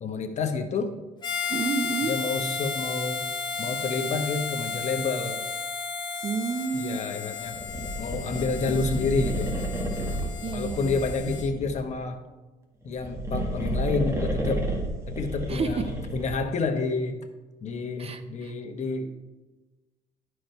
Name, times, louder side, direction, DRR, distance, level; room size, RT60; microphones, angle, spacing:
voice 1, 0.0-0.9 2.0-3.3 3.6-5.4 6.7-7.5 8.0-9.5 10.5-12.2 12.8-14.7 15.1-17.2 17.6-19.1, left 4 dB, 45° left, 5 dB, 1.1 m, -29 dB
Harmonica, 1.2-11.5, left 5 dB, 25° left, 1.3 m, -33 dB
voice 2, 1.5-2.1 6.2-7.0 10.4-11.0 15.5-15.7 18.0-18.5, right 5 dB, 35° right, 10 dB, 0.7 m, -30 dB
sound 1, 7.5-11.9 12.8-16.5, right 1 dB, 15° right, 1.7 m, -31 dB
12.0 x 4.9 x 4.6 m, 1.2 s
cardioid pair, 110°, 17 cm